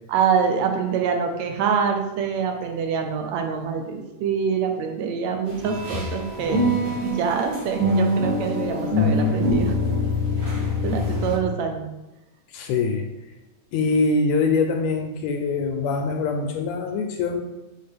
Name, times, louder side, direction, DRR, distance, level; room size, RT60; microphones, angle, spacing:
voice 1, 0.1-9.8 10.5-11.9, right 6 dB, 75° right, 4 dB, 1.8 m, -25 dB
sound 1, 5.5-11.4, left 1 dB, 50° right, 2.4 m, -24 dB
voice 2, 12.5-13.1 13.7-17.4, left 4 dB, 80° left, 4 dB, 1.7 m, -23 dB
6.4 x 4.4 x 3.4 m, 0.97 s
omnidirectional pair, 3.4 m